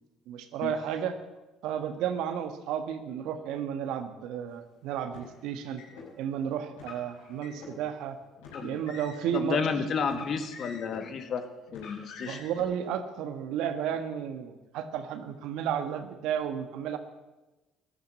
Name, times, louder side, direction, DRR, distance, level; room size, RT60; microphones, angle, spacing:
voice 1, 0.3-1.1 1.6-5.8 6.2-8.2 8.6-9.6 12.2-17.0, right 9 dB, 70° right, 9 dB, 1.5 m, -32 dB
Car, 5.1-6.1 6.7-7.7 8.4-9.4 10.0-11.1 11.7-12.6, left 5 dB, 80° left, 6.0 m, -46 dB
voice 2, 9.3-11.5 11.7-12.4, left 5 dB, 55° left, 8 dB, 1.8 m, -31 dB
15.0 x 11.5 x 7.7 m, 1.1 s
hypercardioid pair, 60°, 0 cm